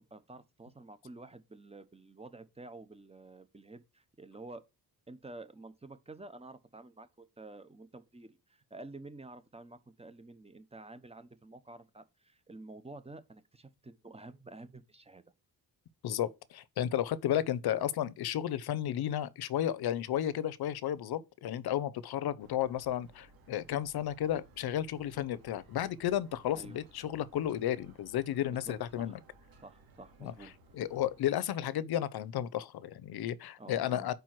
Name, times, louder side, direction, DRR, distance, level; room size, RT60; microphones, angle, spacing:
voice 1, 0.1-4.6 5.1-15.2 26.5-26.8 28.5-29.2 29.6-30.5 33.6-34.1, right 2 dB, 15° right, 0.9 m, -50 dB
voice 2, 16.0-29.2 30.2-30.3 30.7-34.1, left 11 dB, 75° left, 0.7 m, -33 dB
sound 1, 22.4-31.2, right 2 dB, 70° right, 2.5 m, -60 dB
5.2 x 4.6 x 5.9 m
cardioid pair, 110°, 37 cm